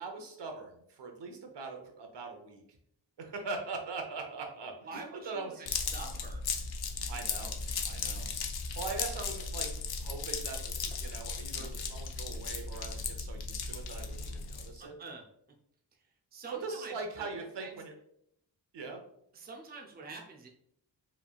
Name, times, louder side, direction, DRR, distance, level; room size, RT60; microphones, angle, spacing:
voice 1, 0.0-2.6 3.2-5.7 7.1-7.6 7.8-8.3 8.8-9.7 10.0-14.9 16.6-17.9 18.7-19.0, right 3 dB, 80° right, 4 dB, 0.9 m, -41 dB
voice 2, 4.8-6.4 15.0-15.2 16.3-17.3 17.6-17.7 19.3-20.5, right 3 dB, 25° right, 1 dB, 0.5 m, -46 dB
sound 1, 5.7-14.8, left 4 dB, 65° left, 0.6 m, -36 dB
4.8 x 3.4 x 2.4 m, 0.72 s
wide cardioid pair, 165°, 42 cm